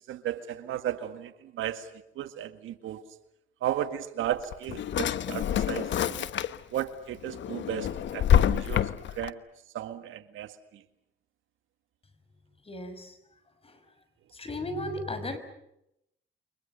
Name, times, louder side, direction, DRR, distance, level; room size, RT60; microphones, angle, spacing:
voice 1, 0.1-1.9 2.2-3.0 3.6-6.3 6.7-8.9 9.2-9.4 9.7-10.8, right 11 dB, 80° right, 1.9 m, -34 dB
Drawer open or close, 4.3-6.8 7.2-9.3, left 10 dB, 70° left, 1.3 m, -27 dB
voice 2, 12.6-13.2 13.6-13.8 14.3-15.4, left 1 dB, 30° left, 6.2 m, -35 dB
29.0 x 24.5 x 6.9 m
cardioid pair, 90°, 20 cm